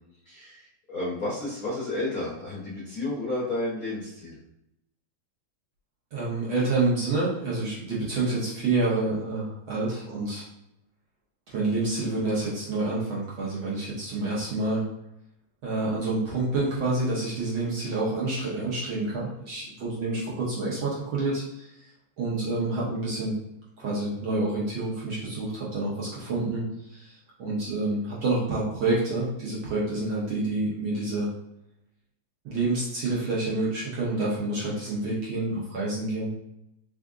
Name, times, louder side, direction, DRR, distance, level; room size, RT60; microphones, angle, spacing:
voice 1, 0.2-4.4 13.8-13.9, left 2 dB, 85° left, -6 dB, 0.7 m, -32 dB
voice 2, 6.1-10.4 11.5-14.8 15.6-21.9 22.2-23.3 23.8-27.1 27.4-31.3 32.4-36.3, right 2 dB, 60° right, -6 dB, 1.4 m, -28 dB
4.7 x 2.5 x 3.6 m, 0.82 s
omnidirectional pair, 3.3 m